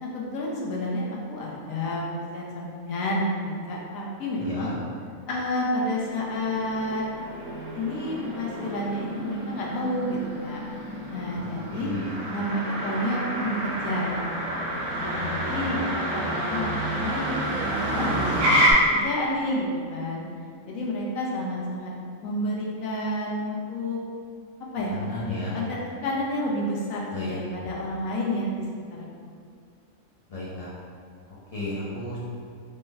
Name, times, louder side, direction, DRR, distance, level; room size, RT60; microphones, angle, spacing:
voice 1, 0.0-2.0 2.3-4.7 5.3-7.1 7.7-10.6 11.1-11.9 12.3-14.2 14.5-14.6 15.0-18.3 18.9-20.2 20.7-21.9 22.2-24.0 24.7-25.3 25.5-28.6 29.0-29.1, left 1 dB, 80° left, -3 dB, 1.0 m, -30 dB
voice 2, 4.4-4.8 11.7-12.1 15.2-15.6 24.9-25.5 27.1-27.4 30.3-30.7 31.5-32.2, left 2 dB, 60° left, -9 dB, 0.3 m, -33 dB
Motor vehicle (road), 5.6-18.7, right 1 dB, 70° right, 1.0 m, -29 dB
3.2 x 2.0 x 3.4 m, 2.2 s
omnidirectional pair, 1.4 m